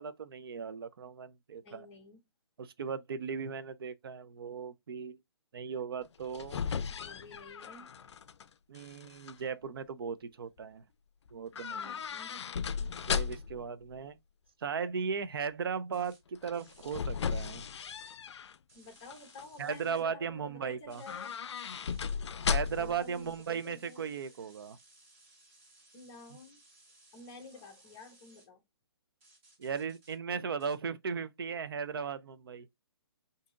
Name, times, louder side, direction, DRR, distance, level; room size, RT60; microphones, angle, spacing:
voice 1, 0.0-1.9 2.6-5.2 5.5-6.6 8.7-10.8 11.3-12.0 13.1-14.2 14.6-17.6 19.6-21.0 22.5-24.8 29.6-32.7, right 6 dB, 60° right, 0.5 m, -37 dB
voice 2, 1.5-2.2 6.9-7.9 12.1-12.4 12.8-12.9 18.7-21.3 22.7-24.2 25.9-26.6 27.1-28.6, left 3 dB, 20° left, 0.8 m, -51 dB
sound 1, 6.0-8.4 8.7-9.3 11.5-13.6 16.4-18.5 19.0-19.4 20.9-23.0 23.3-23.4, left 6 dB, 90° left, 0.4 m, -36 dB
sound 2, 15.9-16.2 16.5-17.0 17.7-18.2 18.7-20.0 20.9-22.1 22.6-28.5 29.2-30.2 30.6-30.8, right 2 dB, 30° right, 1.9 m, -62 dB
3.6 x 2.7 x 3.7 m
hypercardioid pair, 170°, 14 cm